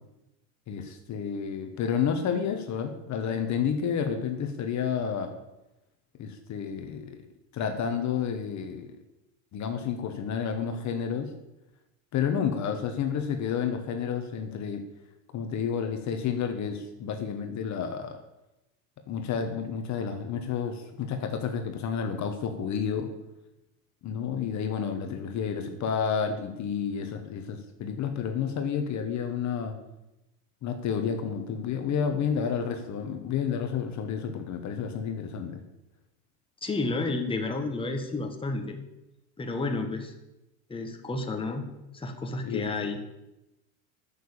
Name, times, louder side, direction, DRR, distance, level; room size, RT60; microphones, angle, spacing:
voice 1, 0.7-5.3 6.2-7.1 7.5-8.9 9.5-11.3 12.1-14.8 15.3-18.2 19.1-23.1 24.0-29.8 30.6-35.6 42.4-42.7, left 7 dB, 40° left, 6 dB, 1.4 m, -30 dB
voice 2, 36.6-38.8 39.4-40.1 40.7-41.7 41.9-43.0, left 3 dB, 10° left, 4 dB, 1.5 m, -31 dB
9.1 x 7.0 x 8.8 m, 0.95 s
supercardioid pair, 125°, 44 cm